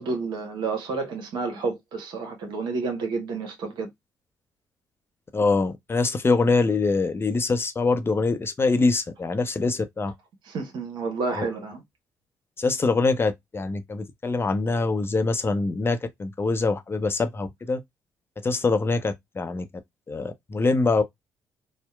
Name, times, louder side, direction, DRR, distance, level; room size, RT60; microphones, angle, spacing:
voice 1, 0.0-3.9 10.5-11.8, right 4 dB, 65° right, 0.8 m, -30 dB
voice 2, 5.3-10.1 11.3-11.4 12.6-17.8 18.4-19.7 20.1-21.0, left 3 dB, 30° left, 0.6 m, -24 dB
2.8 x 2.1 x 2.3 m
hypercardioid pair, 45°, 8 cm